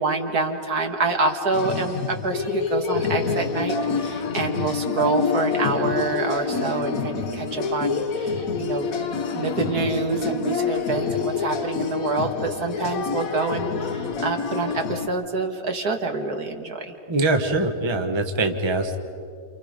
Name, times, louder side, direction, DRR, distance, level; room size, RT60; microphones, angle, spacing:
voice 1, 0.0-8.9 9.3-16.9, right 3 dB, 65° right, 4 dB, 2.2 m, -26 dB
sound 1, 1.5-15.1, left 5 dB, 60° left, 1.3 m, -27 dB
voice 2, 17.1-19.0, right 2 dB, 20° right, 5 dB, 1.2 m, -23 dB
29.0 x 28.0 x 5.2 m, 2.5 s
omnidirectional pair, 1.8 m